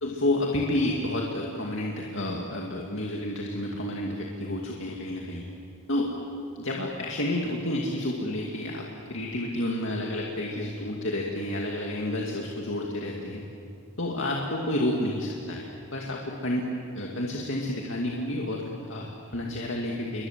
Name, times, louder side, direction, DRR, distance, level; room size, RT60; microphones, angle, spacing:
voice 1, 0.0-5.4 5.9-6.2 6.6-13.4 14.0-20.3, left 1 dB, 60° left, -1 dB, 2.4 m, -30 dB
28.5 x 23.0 x 7.5 m, 2.5 s
head